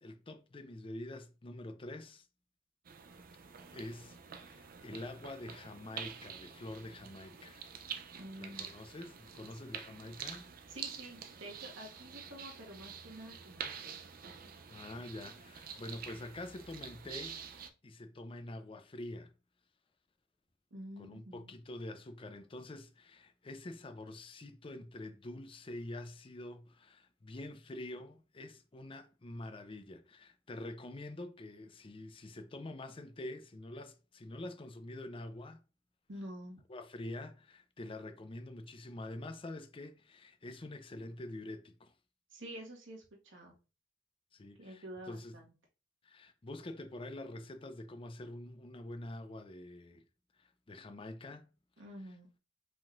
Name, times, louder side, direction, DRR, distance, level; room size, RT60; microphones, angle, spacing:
voice 1, 0.0-2.3 3.7-7.6 8.4-10.5 14.7-17.4 17.8-19.3 21.0-35.6 36.7-41.9 44.3-45.4 46.0-50.0 50.4-51.5, left 1 dB, 30° left, 0.5 m, -46 dB
sound 1, 2.8-17.7, right 7 dB, 50° right, 0.5 m, -47 dB
voice 2, 8.1-8.7 10.7-14.0 14.3-14.4 20.7-21.5 36.1-36.6 42.3-43.5 44.6-45.5 51.8-52.3, right 1 dB, 85° right, 1.6 m, -48 dB
5.1 x 3.7 x 2.5 m
head